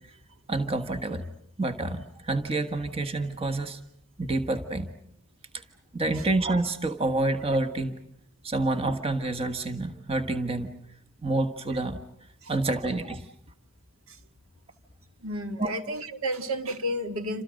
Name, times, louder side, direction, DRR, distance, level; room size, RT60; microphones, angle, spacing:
voice 1, 0.5-1.2 1.6-3.8 4.2-4.9 5.5-5.6 5.9-8.0 8.4-10.7 11.2-12.0 12.5-13.2 15.6-15.7, right 2 dB, 25° right, 8 dB, 1.5 m, -28 dB
voice 2, 15.2-17.4, equal, 75° right, 7 dB, 2.0 m, -31 dB
29.0 x 26.5 x 6.5 m, 0.72 s
head